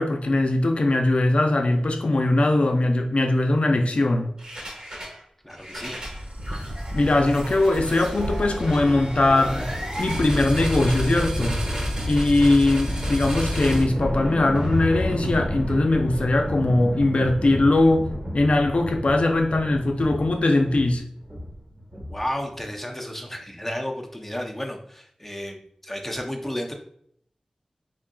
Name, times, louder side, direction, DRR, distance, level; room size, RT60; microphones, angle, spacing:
voice 1, 0.0-4.3 6.9-9.7 10.0-11.6 12.1-21.0, left 2 dB, 65° left, 5 dB, 0.5 m, -21 dB
sound 1, 4.4-5.2 5.5-22.5, equal, 40° right, 1.2 m, -30 dB
voice 2, 5.4-5.9 22.1-26.7, equal, 10° left, 2 dB, 0.6 m, -32 dB
sound 2, 6.0-11.9, equal, 80° right, 1.1 m, -38 dB
3.7 x 3.6 x 2.3 m, 0.65 s
wide cardioid pair, 70°, 2 cm